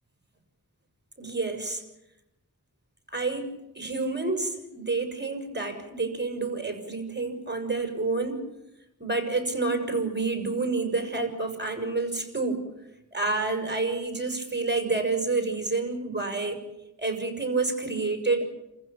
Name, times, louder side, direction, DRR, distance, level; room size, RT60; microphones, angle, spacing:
voice 1, 1.2-1.8 3.1-8.4 9.0-12.6 13.1-16.6 17.0-18.5, right 3 dB, 30° right, 4 dB, 6.6 m, -28 dB
29.0 x 15.5 x 8.8 m, 0.92 s
wide cardioid pair, 40°, 34 cm